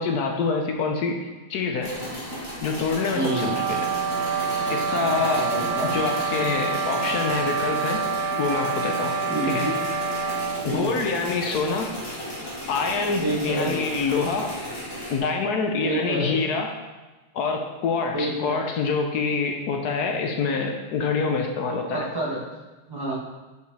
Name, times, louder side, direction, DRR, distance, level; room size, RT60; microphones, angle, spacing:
voice 1, 0.0-1.9 2.6-3.9 4.7-5.6 5.9-8.1 8.4-9.2 9.4-9.7 10.6-12.0 12.7-14.5 15.1-16.7 17.3-22.1, left 4 dB, 75° left, 2 dB, 0.9 m, -26 dB
sound 1, 1.8-15.2, equal, 10° left, 2.2 m, -35 dB
voice 2, 3.1-3.5 5.3-5.9 9.3-9.7 10.6-10.8 13.2-13.8 15.8-16.4 18.1-18.6 21.9-22.4 22.9-23.1, right 1 dB, 10° right, -5 dB, 1.2 m, -28 dB
sound 2, 3.1-10.7, right 5 dB, 70° right, 1.5 m, -27 dB
6.9 x 4.8 x 4.1 m, 1.2 s
omnidirectional pair, 2.3 m